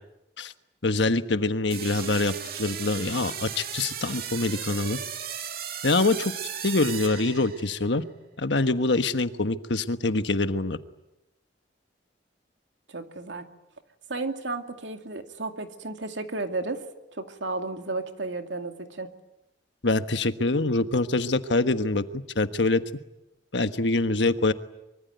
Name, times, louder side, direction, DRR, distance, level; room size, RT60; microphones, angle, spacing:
voice 1, 0.8-2.3 2.6-5.0 5.8-6.3 6.6-8.0 8.4-10.8 19.8-22.0 22.3-22.8 23.5-24.5, left 2 dB, 70° left, 10 dB, 1.4 m, -24 dB
sound 1, 1.7-7.9, right 8 dB, 55° right, 2.4 m, -36 dB
voice 2, 12.9-13.5 14.1-16.8 17.1-19.1, right 3 dB, 75° right, 6 dB, 2.5 m, -33 dB
24.5 x 24.0 x 9.3 m, 0.92 s
head